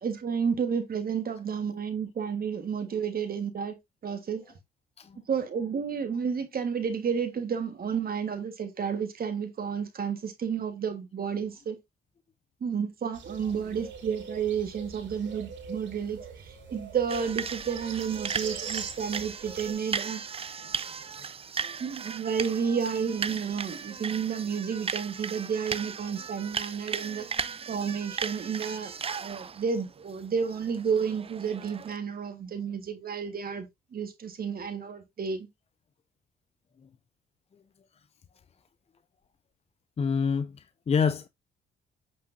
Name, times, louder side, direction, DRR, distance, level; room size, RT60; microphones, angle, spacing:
voice 1, 0.0-3.8 4.0-4.4 5.3-11.8 12.6-20.2 21.8-27.3 27.7-28.9 29.2-35.5, right 6 dB, 50° right, 1.5 m, -31 dB
sound 1, 13.1-19.7, right 5 dB, 70° right, 3.1 m, -42 dB
sound 2, 17.1-32.0, right 6 dB, 30° right, 0.5 m, -37 dB
voice 2, 40.0-41.3, left 6 dB, 30° left, 0.5 m, -27 dB
8.1 x 5.0 x 2.6 m
cardioid pair, 90°, 20 cm